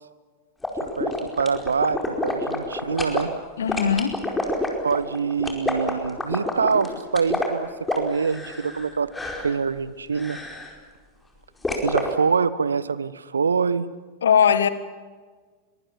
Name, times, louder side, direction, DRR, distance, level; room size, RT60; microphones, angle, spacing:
sound 1, 0.6-3.2 3.7-8.9 9.1-9.6 10.2-10.7 11.6-12.1, left 2 dB, 10° left, 4.8 m, -28 dB
voice 1, 1.0-3.3 4.8-9.1 9.4-10.4 11.7-13.9, right 5 dB, 75° right, 17 dB, 1.2 m, -25 dB
voice 2, 3.6-4.1 14.2-14.7, left 7 dB, 65° left, 13 dB, 1.8 m, -19 dB
24.5 x 23.5 x 7.2 m, 1.4 s
figure-of-eight pair, 90°, 0 cm